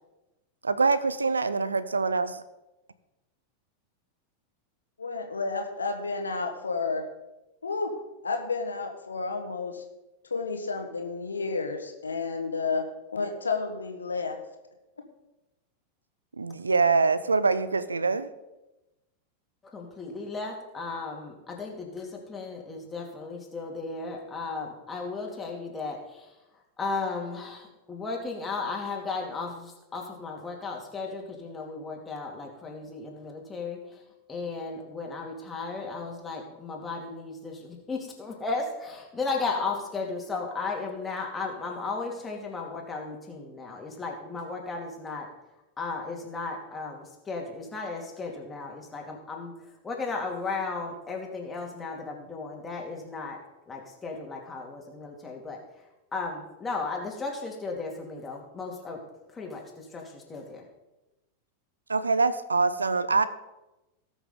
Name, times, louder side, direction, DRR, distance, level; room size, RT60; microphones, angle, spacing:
voice 1, 0.6-2.4 16.4-18.3 61.9-63.3, right 4 dB, 75° right, 14 dB, 0.6 m, -24 dB
voice 2, 5.0-7.0 7.6-7.9 8.2-9.8 10.3-12.8 13.1-14.4, left 4 dB, 75° left, 4 dB, 1.5 m, -31 dB
voice 3, 19.6-26.3 26.8-34.0 34.3-45.3 45.8-49.5 49.8-55.6 56.1-59.0 59.3-60.6, left 4 dB, 15° left, 0 dB, 2.5 m, -35 dB
18.5 x 6.3 x 3.8 m, 1.0 s
figure-of-eight pair, 90°, 0 cm